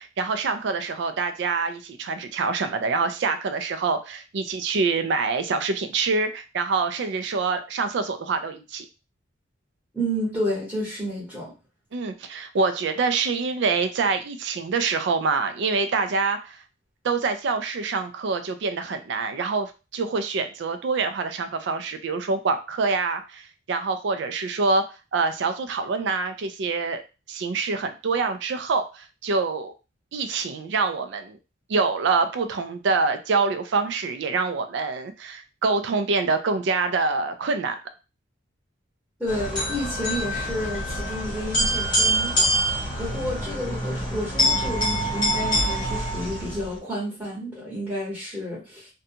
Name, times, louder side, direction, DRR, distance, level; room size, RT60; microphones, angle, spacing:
voice 1, 0.0-8.9 11.9-16.6 17.0-27.0 27.3-29.7 30.1-31.4 31.7-37.8, right 4 dB, 60° right, 9 dB, 0.4 m, -25 dB
voice 2, 9.9-11.5 39.2-48.9, equal, 5° right, -8 dB, 1.2 m, -30 dB
sound 1, 39.3-46.8, equal, 25° left, 1.1 m, -25 dB
2.5 x 2.2 x 2.7 m, 0.30 s
head